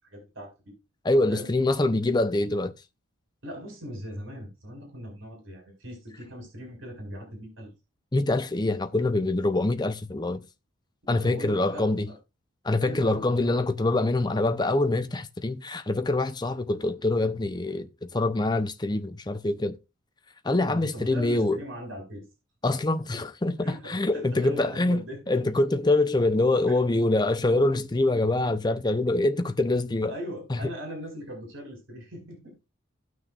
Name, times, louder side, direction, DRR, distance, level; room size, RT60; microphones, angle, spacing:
voice 1, 0.0-0.7 1.3-1.5 3.4-7.7 11.1-12.2 12.8-13.5 20.7-22.3 23.1-23.2 23.6-25.4 26.7-26.8 30.1-32.5, equal, 70° right, 4.9 m, -40 dB
voice 2, 1.0-2.7 8.1-10.4 11.1-12.1 12.6-19.8 20.4-21.6 22.6-25.0 25.3-30.1 30.5-30.6, left 2 dB, 20° left, 0.7 m, -25 dB
17.0 x 6.3 x 2.5 m
head